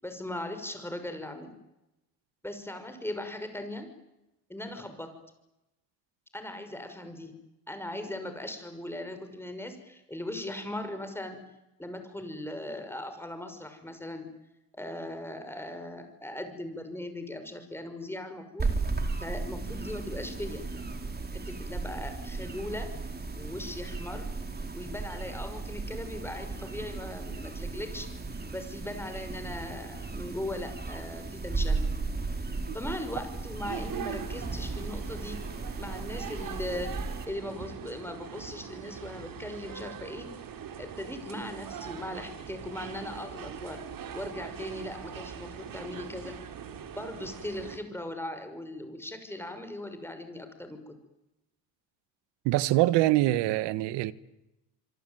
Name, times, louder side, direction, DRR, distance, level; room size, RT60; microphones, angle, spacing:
voice 1, 0.0-1.5 2.4-3.9 4.5-5.1 6.3-7.3 7.7-11.4 11.8-14.3 14.7-18.7 19.2-20.6 21.3-22.9 23.4-24.3 24.7-28.1 28.5-31.9 32.7-35.4 35.8-36.9 37.3-40.3 40.8-43.8 44.1-46.4 46.9-50.9, left 1 dB, 5° left, 6.3 m, -39 dB
sound 1, 18.6-37.2, right 3 dB, 20° right, 4.7 m, -35 dB
sound 2, 33.6-47.8, right 8 dB, 50° right, 4.2 m, -42 dB
voice 2, 52.4-54.1, right 16 dB, 80° right, 1.5 m, -24 dB
26.5 x 24.0 x 9.4 m
supercardioid pair, 95°, 42 cm